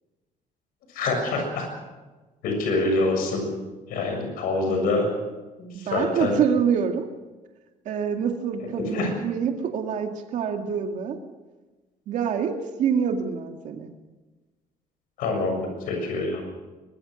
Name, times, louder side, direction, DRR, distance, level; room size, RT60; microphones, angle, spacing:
voice 1, 0.9-1.6 2.4-3.5 3.9-5.0 5.6-6.4 8.6-9.1 15.2-16.4, left 3 dB, 85° left, 3 dB, 7.0 m, -26 dB
voice 2, 5.9-7.1 7.9-11.2 12.1-12.5 12.8-13.9, right 7 dB, 55° right, 4 dB, 2.2 m, -26 dB
23.5 x 22.5 x 6.5 m, 1.2 s
cardioid pair, 165°, 14 cm